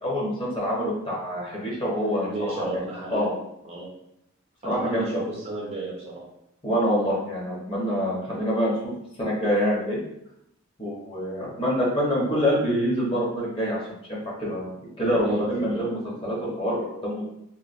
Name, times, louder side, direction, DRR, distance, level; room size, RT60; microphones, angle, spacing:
voice 1, 0.0-2.8 3.1-3.3 4.6-5.2 6.6-8.9 9.2-10.0 10.8-13.8 14.1-14.7 15.0-17.2, equal, 25° left, -5 dB, 0.8 m, -26 dB
voice 2, 1.9-3.3 3.6-3.9 4.7-6.3 15.0-15.8, right 2 dB, 30° right, -3 dB, 0.4 m, -33 dB
3.0 x 2.2 x 2.5 m, 0.80 s
head